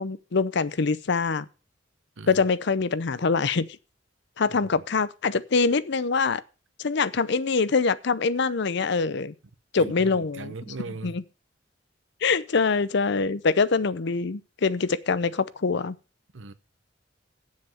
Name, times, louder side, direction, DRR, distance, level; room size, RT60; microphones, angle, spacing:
voice 1, 0.0-1.5 2.3-3.6 4.4-6.4 6.8-9.3 9.7-10.5 11.0-11.2 12.2-16.0, left 4 dB, 65° left, 0.6 m, -24 dB
voice 2, 9.8-11.2 16.3-16.5, right 3 dB, 75° right, 0.9 m, -39 dB
7.7 x 7.3 x 7.6 m
head